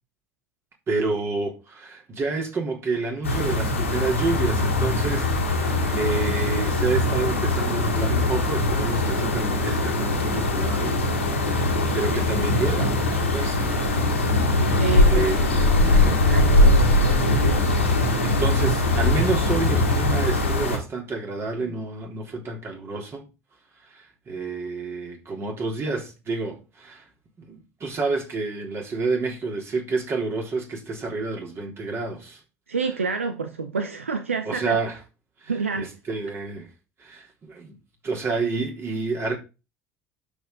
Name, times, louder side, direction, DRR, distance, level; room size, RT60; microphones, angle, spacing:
voice 1, 0.9-11.0 11.4-13.8 15.1-15.4 16.0-16.2 18.2-23.3 23.9-27.1 27.4-32.4 34.5-35.0 35.4-36.7 37.0-37.8 38.0-39.3, right 3 dB, 40° right, 3.6 m, -29 dB
sound 1, 3.2-20.8, left 2 dB, 85° left, 2.1 m, -21 dB
voice 2, 14.7-15.3 15.7-17.7 32.7-34.8 35.5-35.9, right 5 dB, 85° right, 0.7 m, -28 dB
12.0 x 5.3 x 3.9 m
figure-of-eight pair, 60°, 7 cm